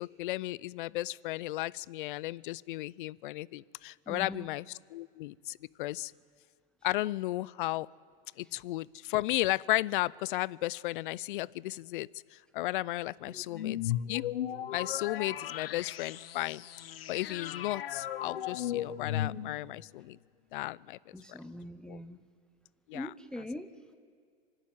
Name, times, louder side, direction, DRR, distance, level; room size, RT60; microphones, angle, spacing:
voice 1, 0.0-4.6 4.9-6.1 6.8-7.9 8.4-14.3 14.7-16.6 17.1-20.2 20.5-21.4 21.9-22.0 22.9-23.1, left 17 dB, 60° left, 24 dB, 0.5 m, -34 dB
voice 2, 4.1-4.5 13.3-13.8 21.1-22.3 22.9-23.9, left 1 dB, 5° left, 7 dB, 0.7 m, -43 dB
sound 1, 13.5-19.8, left 11 dB, 75° left, 1.0 m, -36 dB
25.0 x 11.5 x 9.5 m, 2.1 s
hypercardioid pair, 125°, 29 cm